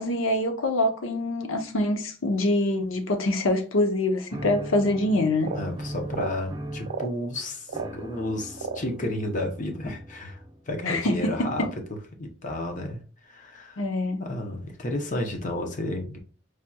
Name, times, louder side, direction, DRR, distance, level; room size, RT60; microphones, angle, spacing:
voice 1, 0.0-5.5 10.9-11.7 13.8-14.2, left 1 dB, 85° left, 0.7 m, -25 dB
sound 1, 4.3-10.8, right 1 dB, 20° right, 0.7 m, -39 dB
sound 2, 5.4-5.7 6.0-6.4 6.8-7.2 7.7-7.9 8.6-8.9, right 5 dB, 80° right, 0.4 m, -33 dB
voice 2, 5.5-13.8 14.2-16.2, left 1 dB, 40° left, 0.7 m, -32 dB
4.8 x 2.8 x 2.3 m
head